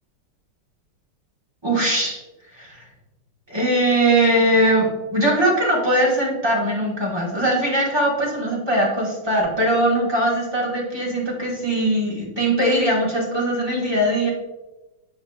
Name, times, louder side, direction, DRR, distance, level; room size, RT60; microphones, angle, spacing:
voice 1, 1.6-2.2 2.5-2.8 3.5-14.3, right 1 dB, 15° right, -4 dB, 1.0 m, -20 dB
8.8 x 4.9 x 2.3 m, 1.1 s
omnidirectional pair, 2.4 m